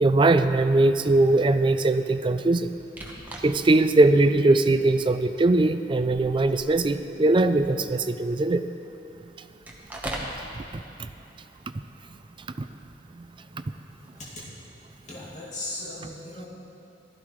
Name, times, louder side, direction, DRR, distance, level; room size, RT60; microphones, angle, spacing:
voice 1, 0.0-2.7 3.4-8.6 10.6-11.1, right 2 dB, 25° right, 10 dB, 0.4 m, -21 dB
sound 1, 3.0-3.8 4.3-4.4 5.3-5.6 5.9-8.2 9.7-10.4 14.0-14.4, right 1 dB, 10° right, 1.1 m, -39 dB
voice 2, 15.1-16.5, left 2 dB, 40° left, -8 dB, 2.3 m, -37 dB
15.5 x 13.0 x 3.2 m, 2.9 s
head